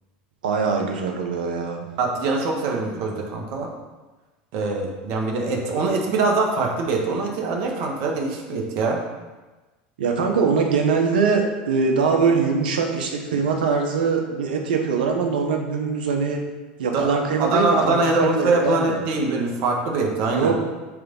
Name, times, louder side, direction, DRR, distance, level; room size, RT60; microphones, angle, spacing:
voice 1, 0.4-1.8 2.9-3.0 10.0-16.4 16.8-19.0 20.3-20.6, right 5 dB, 85° right, 3 dB, 1.2 m, -22 dB
voice 2, 2.0-3.7 4.5-9.0 16.9-20.5, right 3 dB, 60° right, 1 dB, 1.6 m, -23 dB
8.4 x 3.6 x 5.5 m, 1.2 s
hypercardioid pair, 95°, 5 cm